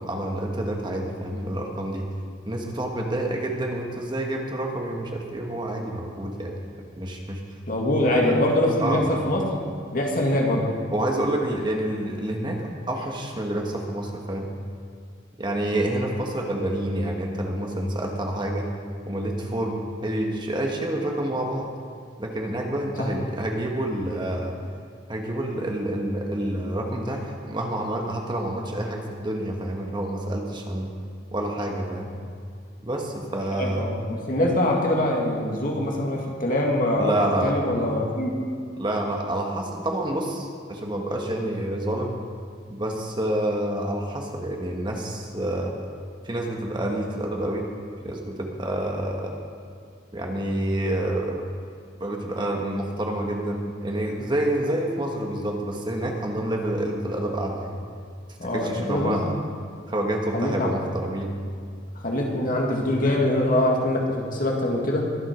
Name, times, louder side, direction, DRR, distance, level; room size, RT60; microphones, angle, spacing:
voice 1, 0.0-2.1 2.4-6.6 7.0-7.4 8.1-8.4 8.8-9.1 10.9-14.5 15.4-18.7 19.0-21.7 22.2-24.6 25.1-30.9 31.3-32.1 32.8-33.9 37.0-37.5 38.8-42.1 42.7-45.8 46.2-47.7 48.0-49.3 50.1-51.4 52.0-57.8 58.5-59.4 59.9-61.3, right 1 dB, 25° right, 1 dB, 1.4 m, -28 dB
voice 2, 7.7-9.6 9.9-10.7 23.0-23.1 33.5-38.5 58.4-59.2 60.3-60.7 62.0-65.1, left 1 dB, 45° left, -1 dB, 2.1 m, -24 dB
22.5 x 7.6 x 5.2 m, 2.3 s
head